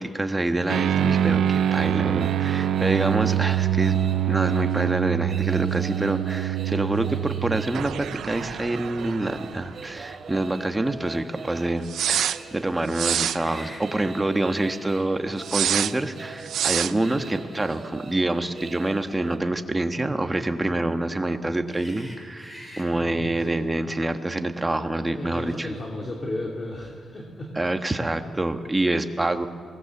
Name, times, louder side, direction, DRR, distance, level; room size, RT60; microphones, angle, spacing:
voice 1, 0.0-4.0 4.3-25.7 27.5-29.5, right 2 dB, 15° right, 7 dB, 1.4 m, -26 dB
sound 1, 0.6-19.4, right 4 dB, 55° right, 2.7 m, -43 dB
sound 2, 0.7-9.8 10.1-10.2 11.9-12.4 12.9-13.4 15.4-15.9 16.5-16.9, right 10 dB, 85° right, 0.6 m, -25 dB
sound 3, 13.3-13.9 15.1-15.2 16.2-17.0 18.9-19.1 21.7-22.9, equal, 15° left, 6.5 m, -44 dB
voice 2, 22.9-23.6 24.8-27.5, left 1 dB, 30° left, 0 dB, 2.8 m, -34 dB
24.0 x 19.0 x 7.2 m, 2.1 s
cardioid pair, 100°, 0 cm